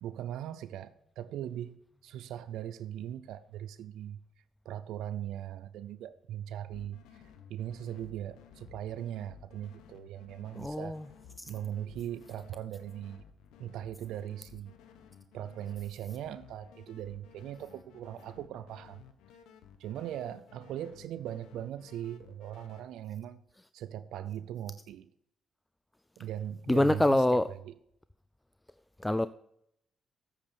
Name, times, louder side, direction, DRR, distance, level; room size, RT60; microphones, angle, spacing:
voice 1, 0.0-4.2 4.6-11.0 11.5-13.2 13.6-14.7 15.3-19.0 19.8-23.4 23.7-25.0 26.2-27.2 27.5-27.6, right 11 dB, 85° right, 0.5 m, -40 dB
sound 1, 6.7-22.8, left 8 dB, 90° left, 1.2 m, -56 dB
voice 2, 10.5-11.1 11.4-11.5 26.7-27.5 29.0-29.3, left 1 dB, 10° left, 0.4 m, -26 dB
8.3 x 8.3 x 6.9 m
cardioid pair, 90°, 0 cm